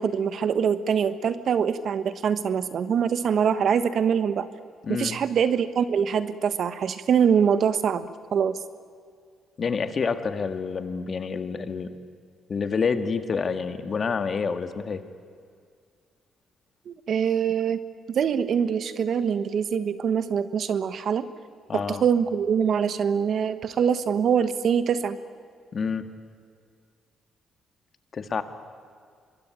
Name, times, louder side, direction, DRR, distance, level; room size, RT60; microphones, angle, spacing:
voice 1, 0.0-4.5 4.9-8.6 16.9-17.8 18.1-21.3 21.7-25.2, right 7 dB, 60° right, 12 dB, 1.3 m, -24 dB
voice 2, 4.8-5.2 9.6-12.0 12.5-15.0 21.7-22.0 25.7-26.1 28.1-28.4, left 5 dB, 45° left, 9 dB, 1.9 m, -28 dB
25.5 x 22.5 x 9.2 m, 2.1 s
cardioid pair, 90°, 0 cm